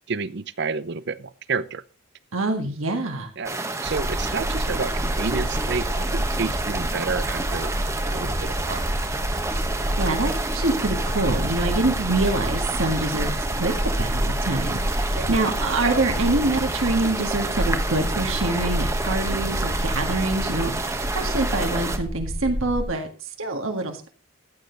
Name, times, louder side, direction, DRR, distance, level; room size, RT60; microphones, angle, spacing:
voice 1, 0.1-1.8 3.4-3.6 3.8-7.7 8.0-8.8 15.1-15.3, right 4 dB, 50° right, 0.6 m, -30 dB
voice 2, 2.3-3.3 10.0-13.3 13.6-20.8 21.1-24.1, right 2 dB, 70° right, 1.9 m, -25 dB
sound 1, 3.4-22.0, right 2 dB, 15° right, 1.1 m, -29 dB
sound 2, 3.8-22.9, equal, 90° right, 4.4 m, -29 dB
14.5 x 9.1 x 3.9 m
head